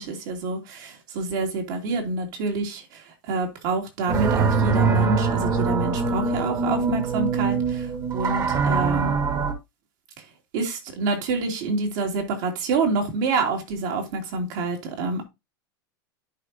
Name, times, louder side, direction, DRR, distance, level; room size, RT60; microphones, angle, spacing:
voice 1, 0.0-3.0 3.3-7.6 8.1-9.1 10.5-15.2, right 3 dB, 65° right, 2.8 m, -27 dB
sound 1, 4.1-9.5, right 4 dB, 30° right, 1.5 m, -23 dB
10.5 x 4.8 x 2.7 m
supercardioid pair, 120°, 11 cm